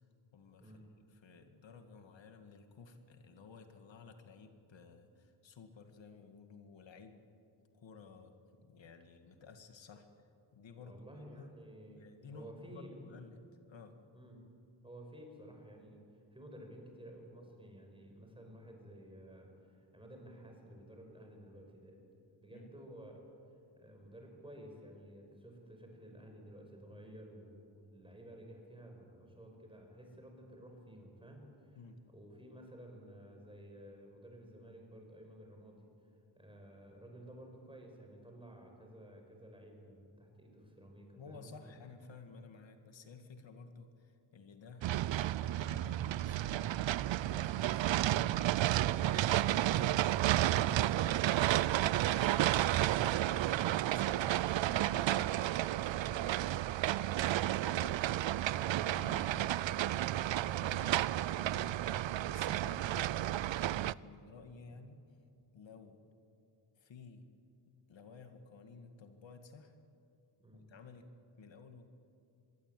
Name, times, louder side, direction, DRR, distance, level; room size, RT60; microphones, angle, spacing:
voice 1, 0.3-0.8 1.1-7.2 7.7-8.3 8.6-10.1 10.5-11.0 11.4-11.5 12.0-13.4 13.7-14.0 22.5-22.7 31.8-32.0 41.2-48.4 49.0-51.0 51.9-52.6 53.2-53.6 53.9-59.5 60.6-65.0 65.5-66.0 66.8-67.2 67.9-69.7 70.5-71.1 71.4-71.9, left 4 dB, 80° left, 6 dB, 2.0 m, -54 dB
voice 2, 10.8-13.0 14.1-14.5 14.8-16.0 16.3-22.0 22.4-23.2 23.8-31.8 32.1-35.8 36.4-41.7 64.7-64.9 70.4-70.6, right 1 dB, 10° right, 2 dB, 5.6 m, -53 dB
sound 1, 44.8-63.9, right 13 dB, 85° right, 0.5 m, -32 dB
24.0 x 22.0 x 9.2 m, 2.5 s
wide cardioid pair, 150°, 44 cm